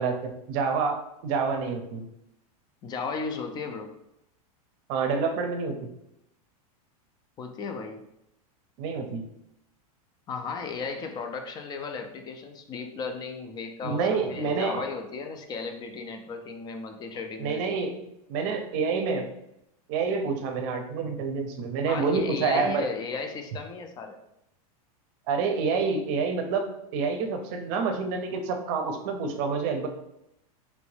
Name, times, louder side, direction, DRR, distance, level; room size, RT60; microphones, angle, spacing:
voice 1, 0.0-2.1 4.9-5.9 8.8-9.2 13.8-14.8 17.4-19.3 19.9-22.9 25.3-29.9, right 5 dB, 50° right, 5 dB, 0.6 m, -28 dB
voice 2, 2.8-3.9 7.4-8.0 10.3-17.6 21.8-24.2, left 4 dB, 20° left, 5 dB, 0.3 m, -35 dB
3.0 x 2.5 x 3.2 m, 0.82 s
supercardioid pair, 135°, 19 cm